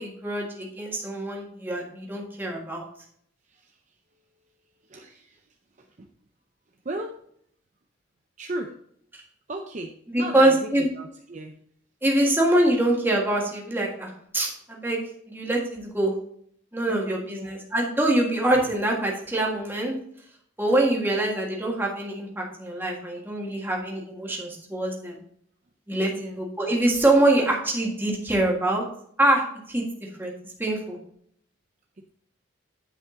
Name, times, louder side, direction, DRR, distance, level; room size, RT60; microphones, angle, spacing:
voice 1, 0.0-2.8 10.1-10.9 12.0-15.0 15.3-16.2 16.7-20.0 20.6-25.2 25.9-28.8 29.2-29.8 30.2-30.3 30.6-31.0, right 1 dB, 10° right, -2 dB, 1.7 m, -24 dB
voice 2, 3.5-3.8 4.8-5.4 5.8-6.1 6.8-7.2 8.4-8.8 9.5-11.6 16.9-17.6 21.2-21.3 26.1-26.4 32.0-32.1, right 1 dB, 35° right, 3 dB, 0.6 m, -37 dB
9.6 x 5.3 x 3.8 m, 0.66 s
head